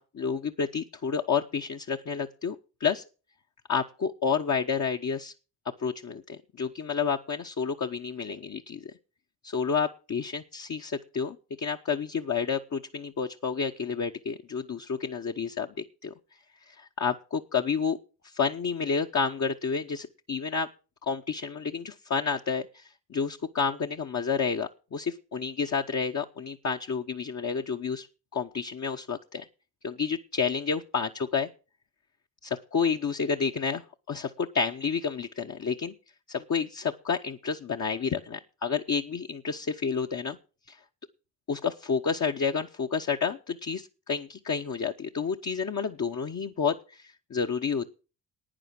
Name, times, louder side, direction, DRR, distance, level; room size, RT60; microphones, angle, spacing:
voice 1, 0.0-3.0 3.7-5.3 5.8-8.9 9.4-15.7 16.0-16.1 16.7-18.0 18.2-20.7 21.0-28.1 28.3-29.5 29.8-31.5 32.4-35.9 36.3-40.4 40.7-40.8 41.5-47.9, left 6 dB, 35° left, 3 dB, 1.0 m, -30 dB
11.0 x 9.3 x 6.0 m, 0.35 s
hypercardioid pair, 50°, 46 cm